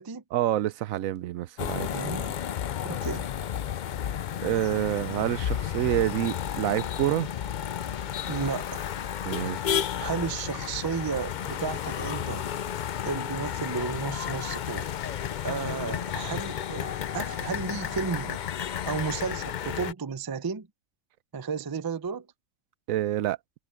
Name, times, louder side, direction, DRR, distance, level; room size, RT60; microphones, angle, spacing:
voice 1, 0.3-1.9 4.4-7.3 9.2-9.6 22.9-23.4, right 13 dB, 80° right, 1.0 m, -27 dB
sound 1, 1.6-19.9, left 9 dB, 70° left, 0.4 m, -32 dB
voice 2, 1.9-2.3 2.8-3.3 8.3-8.9 10.0-12.5 13.0-14.9 15.4-18.4 18.8-20.7 21.3-22.3, right 5 dB, 30° right, 0.4 m, -33 dB
omnidirectional pair, 1.4 m